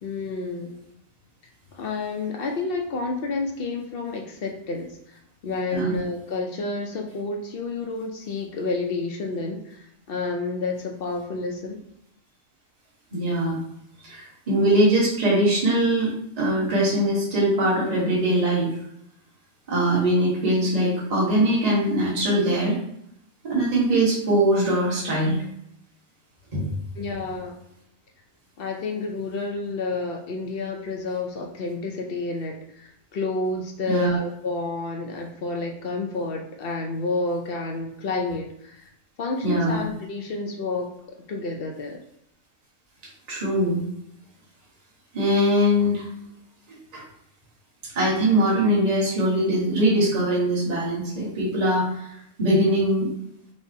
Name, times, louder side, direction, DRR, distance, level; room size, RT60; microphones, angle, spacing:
voice 1, 0.0-0.8 1.7-11.8 27.0-27.6 28.6-38.9 39.2-40.9 41.3-42.0, left 3 dB, 60° left, 1 dB, 0.6 m, -30 dB
voice 2, 13.1-13.6 14.0-16.1 16.4-18.7 19.7-22.8 23.4-25.4 26.5-26.7 33.9-34.1 39.4-39.8 43.3-43.8 45.1-46.1 46.9-47.0 47.9-52.1 52.4-53.1, right 1 dB, 35° right, -6 dB, 1.1 m, -22 dB
5.1 x 2.1 x 2.6 m, 0.76 s
omnidirectional pair, 1.3 m